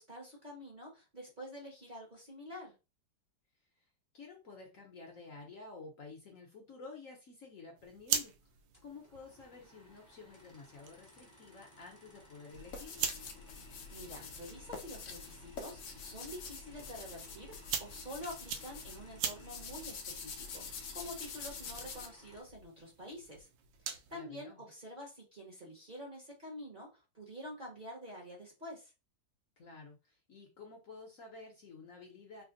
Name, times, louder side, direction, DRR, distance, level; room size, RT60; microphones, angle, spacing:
voice 1, 0.0-2.7 13.9-23.5 23.9-28.9, equal, 35° right, -2 dB, 0.9 m, -48 dB
voice 2, 4.1-8.3 8.8-13.1 24.1-24.6 29.6-32.4, left 4 dB, 55° left, 1 dB, 1.0 m, -51 dB
sound 1, 7.8-24.2, right 8 dB, 90° right, 1.3 m, -44 dB
sound 2, 8.7-22.4, equal, 15° left, 0.7 m, -61 dB
sound 3, 12.5-22.1, left 5 dB, 80° left, 0.7 m, -46 dB
3.4 x 2.1 x 3.7 m, 0.28 s
omnidirectional pair, 1.9 m